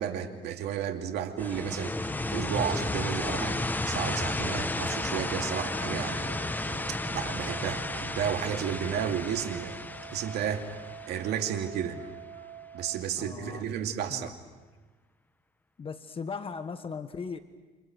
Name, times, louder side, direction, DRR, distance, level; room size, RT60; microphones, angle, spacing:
voice 1, 0.0-6.8 7.1-9.8 10.1-10.6 11.1-11.9 12.7-14.3, right 9 dB, 75° right, 5 dB, 2.6 m, -33 dB
sound 1, 1.4-12.1, left 2 dB, 10° left, 1.0 m, -33 dB
sound 2, 4.8-13.0, right 9 dB, 50° right, 1.3 m, -46 dB
voice 2, 13.2-13.7 14.1-14.3 15.8-17.4, left 5 dB, 35° left, 9 dB, 1.4 m, -38 dB
29.5 x 27.0 x 6.2 m, 1.3 s
cardioid pair, 110°, 17 cm